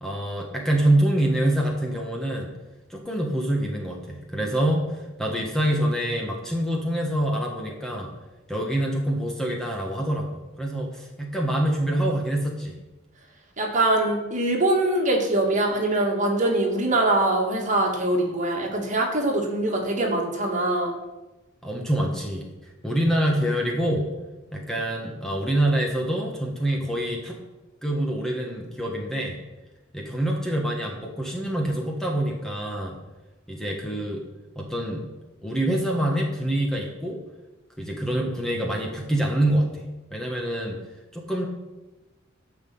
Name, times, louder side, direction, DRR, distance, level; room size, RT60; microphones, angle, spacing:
voice 1, 0.0-2.5 2.9-8.1 8.5-12.7 21.6-22.5 22.8-24.1 24.5-27.4 27.8-29.4 29.9-33.0 33.5-34.2 34.5-35.0 35.4-37.2 37.8-40.8 41.1-41.5, right 1 dB, ahead, -1 dB, 1.5 m, -26 dB
voice 2, 13.6-20.9, right 1 dB, 40° right, 1 dB, 2.4 m, -23 dB
13.5 x 5.9 x 8.6 m, 1.1 s
head